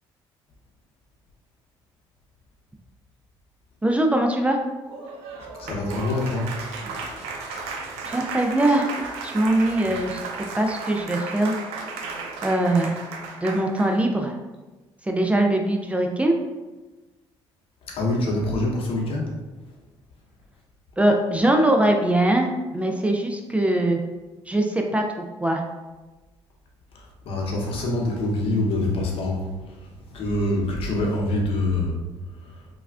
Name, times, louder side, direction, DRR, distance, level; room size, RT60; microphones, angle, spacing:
voice 1, 3.8-4.6 8.0-8.9 9.2-10.2 10.5-11.5 12.4-13.0 13.4-14.4 15.0-16.4 21.0-24.0 24.5-25.6, right 1 dB, 10° right, 3 dB, 0.3 m, -22 dB
Applause, 4.8-14.0, right 4 dB, 85° right, 0.4 m, -34 dB
voice 2, 5.6-6.5 17.9-19.4 26.9-32.0 32.4-32.6, left 2 dB, 65° left, -1 dB, 0.8 m, -25 dB
3.2 x 2.3 x 2.3 m, 1.2 s
supercardioid pair, 80°, 10 cm